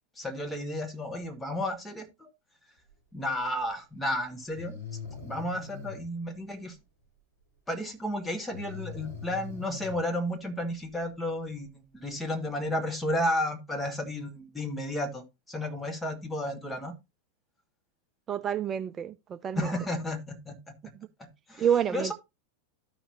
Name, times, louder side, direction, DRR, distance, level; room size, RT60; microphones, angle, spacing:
voice 1, 0.2-2.3 3.1-4.8 5.2-6.8 7.7-16.9 19.5-20.6 21.2-21.7 21.9-22.1, left 1 dB, 10° left, 1.7 m, -32 dB
Breathing, 3.7-3.8 4.5-6.0 8.5-10.0, left 5 dB, 85° left, 5.8 m, -41 dB
voice 2, 18.3-19.7 21.0-21.1 21.6-22.1, right 9 dB, 25° right, 0.4 m, -28 dB
13.0 x 5.9 x 2.7 m
figure-of-eight pair, 90°, 0 cm